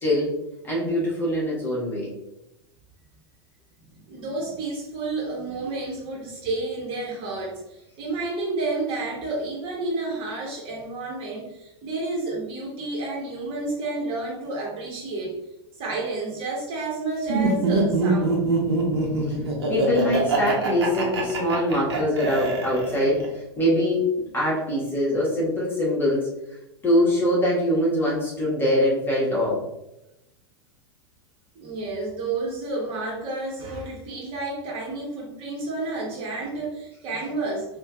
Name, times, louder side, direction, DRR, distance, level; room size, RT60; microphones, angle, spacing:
voice 1, 0.0-0.3 0.6-2.1 19.7-23.2 23.6-24.1 24.3-26.3 26.8-29.6, left 1 dB, 15° left, -7 dB, 1.5 m, -23 dB
voice 2, 3.9-15.3 15.8-18.4 31.5-37.8, right 2 dB, 40° right, -3 dB, 1.2 m, -30 dB
Laughter, 17.3-23.2, right 3 dB, 65° right, 1.0 m, -24 dB
5.4 x 2.5 x 2.3 m, 0.90 s
figure-of-eight pair, 90°, 14 cm